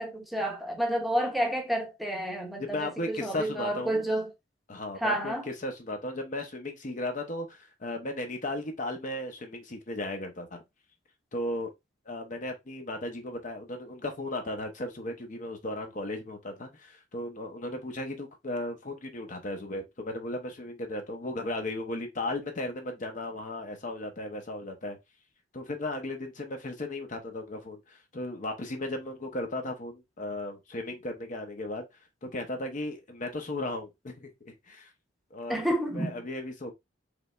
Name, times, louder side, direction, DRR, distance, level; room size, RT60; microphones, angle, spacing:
voice 1, 0.0-4.3 5.0-5.5 35.5-36.2, right 1 dB, ahead, 0.9 m, -30 dB
voice 2, 2.6-4.1 4.7-10.6 11.3-11.7 12.1-25.0 25.5-31.8 32.2-34.9 35.3-35.7 35.9-36.7, left 1 dB, 45° left, 0.8 m, -36 dB
4.9 x 3.2 x 2.4 m
head